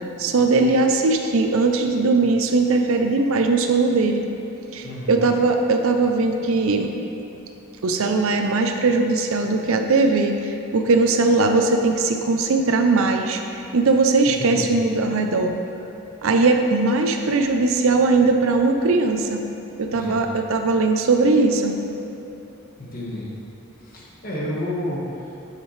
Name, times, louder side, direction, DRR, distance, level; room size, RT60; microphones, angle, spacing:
voice 1, 0.2-4.3 4.7-6.9 7.8-13.4 13.7-15.5 16.2-19.4 19.8-21.8, right 3 dB, 70° right, 5 dB, 0.5 m, -19 dB
voice 2, 4.8-5.4 14.4-14.7 19.9-20.2 22.8-23.3 23.8-25.0, left 1 dB, 40° left, -5 dB, 1.4 m, -30 dB
7.5 x 7.0 x 3.3 m, 2.9 s
head